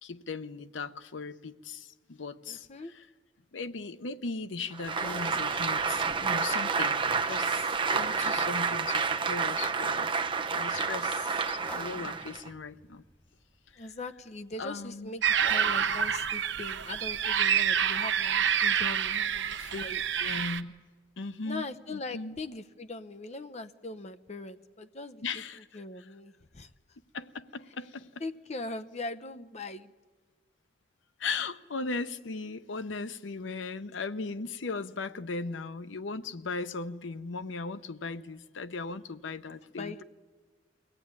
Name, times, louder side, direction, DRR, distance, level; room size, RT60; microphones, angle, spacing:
voice 1, 0.0-2.7 3.5-7.0 7.3-10.1 10.5-13.0 13.8-13.9 14.6-15.1 19.6-19.8 20.2-20.7 21.2-21.6 21.9-22.4 25.2-25.6 27.1-28.1 31.2-40.0, left 4 dB, 80° left, 0.8 m, -37 dB
voice 2, 2.5-2.9 13.8-20.0 21.4-26.7 28.2-29.9 39.8-40.0, left 2 dB, 35° left, 0.8 m, -41 dB
Applause, 4.7-12.5, right 5 dB, 25° right, 0.6 m, -29 dB
sound 1, 4.9-20.2, equal, 10° left, 1.3 m, -51 dB
sound 2, 15.2-20.6, right 8 dB, 70° right, 0.9 m, -27 dB
23.0 x 17.0 x 9.6 m
head